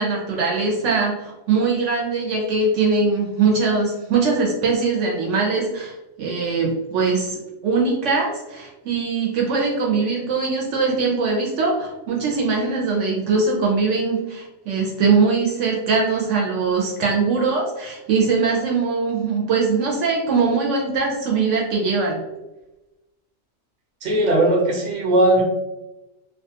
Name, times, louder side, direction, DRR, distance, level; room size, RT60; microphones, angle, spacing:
voice 1, 0.0-22.2, right 4 dB, 70° right, -1 dB, 0.8 m, -21 dB
voice 2, 24.0-25.4, right 1 dB, 45° right, -2 dB, 0.6 m, -18 dB
2.3 x 2.3 x 2.7 m, 1.0 s
omnidirectional pair, 1.4 m